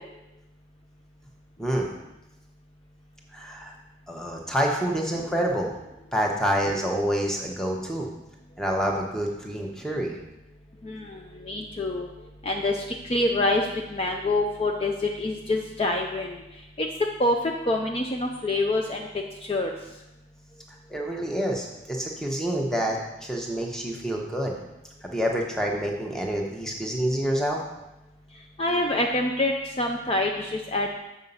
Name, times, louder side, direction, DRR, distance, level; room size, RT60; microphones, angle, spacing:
voice 1, 1.6-1.9 3.3-3.7 4.1-5.8 6.1-8.1 8.6-10.2 20.9-24.5 25.0-27.6, equal, 5° left, 0 dB, 0.9 m, -27 dB
voice 2, 10.8-12.1 12.4-16.4 16.8-16.9 17.2-19.1 19.4-19.8 28.6-31.0, left 2 dB, 30° left, 1 dB, 0.5 m, -26 dB
7.2 x 4.9 x 5.4 m, 0.97 s
head